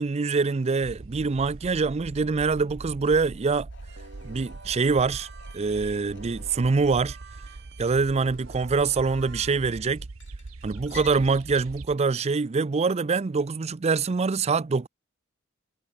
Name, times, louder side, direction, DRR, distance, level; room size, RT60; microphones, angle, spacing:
voice 1, 0.0-3.7 4.2-5.3 5.5-7.2 7.8-10.0 10.6-14.9, right 4 dB, 30° right, 0.4 m, -24 dB
sound 1, 0.8-12.0, right 3 dB, 75° right, 0.9 m, -42 dB
sound 2, 3.7-11.2, left 8 dB, 60° left, 6.2 m, -52 dB
sound 3, 3.9-9.7, right 4 dB, 55° right, 3.9 m, -49 dB
head